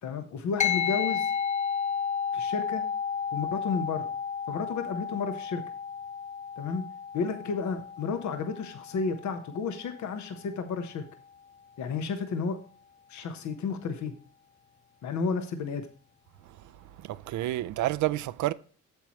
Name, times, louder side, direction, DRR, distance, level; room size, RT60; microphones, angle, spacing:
voice 1, 0.0-1.3 2.3-2.8 3.3-4.1 4.5-5.6 6.6-6.8 7.1-11.0 11.8-12.6 13.1-14.1 15.0-15.9, left 5 dB, 70° left, 1.2 m, -32 dB
sound 1, 0.6-10.3, left 7 dB, 25° left, 0.8 m, -32 dB
voice 2, 17.0-18.5, right 15 dB, 75° right, 0.5 m, -29 dB
8.3 x 7.3 x 3.1 m
cardioid pair, 90°, 30 cm